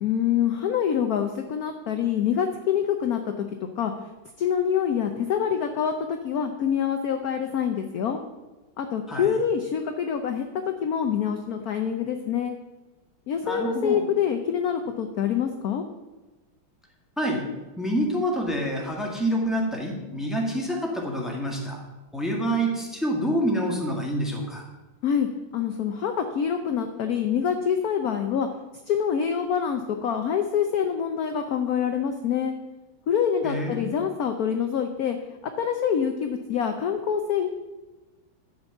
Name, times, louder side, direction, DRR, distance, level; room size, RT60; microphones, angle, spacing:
voice 1, 0.0-3.5 3.8-3.9 4.4-8.2 8.8-12.5 13.3-15.8 25.0-25.3 25.5-28.5 28.9-32.5 33.1-35.2 35.6-37.5, left 8 dB, 65° left, 6 dB, 1.0 m, -26 dB
voice 2, 13.4-14.0 17.2-17.4 17.8-21.8 22.1-24.6 33.4-33.8, equal, ahead, -1 dB, 1.7 m, -27 dB
11.5 x 5.3 x 7.1 m, 1.1 s
omnidirectional pair, 2.2 m